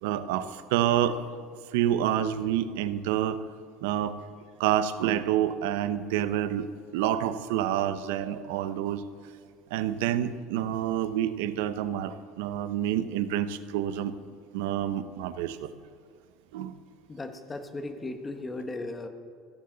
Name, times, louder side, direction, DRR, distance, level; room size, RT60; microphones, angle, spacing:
voice 1, 0.0-1.2 1.7-3.4 3.8-4.2 4.6-6.7 6.9-9.0 9.7-14.1 14.5-15.7 16.5-16.8, right 11 dB, 85° right, 13 dB, 0.7 m, -28 dB
voice 2, 17.1-19.1, left 2 dB, 20° left, 7 dB, 1.3 m, -36 dB
15.5 x 13.5 x 4.0 m, 2.2 s
supercardioid pair, 115°, 0 cm